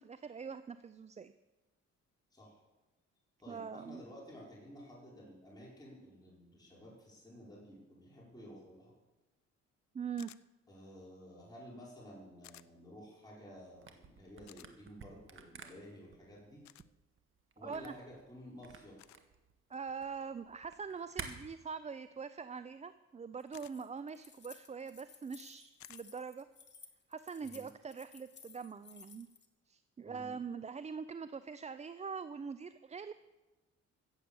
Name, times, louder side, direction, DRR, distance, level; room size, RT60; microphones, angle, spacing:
voice 1, 0.0-1.3 3.5-4.0 9.9-10.3 17.6-17.9 19.7-26.5 27.1-29.3 29.7-33.1, right 6 dB, 25° right, 13 dB, 0.4 m, -43 dB
voice 2, 3.4-8.9 10.7-16.6 17.6-19.0 27.4-27.7 30.0-30.3, equal, 15° left, -6 dB, 5.1 m, -53 dB
sound 1, 10.2-10.4 12.4-12.7 14.5-14.7 16.6-16.9 19.0-19.2 21.2-21.5 23.5-23.8 25.8-26.0, left 14 dB, 70° left, 0.5 m, -56 dB
Camera, 13.7-21.3, right 6 dB, 45° right, 1.6 m, -51 dB
Keys jangling, 23.4-29.5, left 6 dB, 35° left, 1.5 m, -58 dB
15.0 x 8.3 x 7.0 m, 1.1 s
cardioid pair, 90°, 30 cm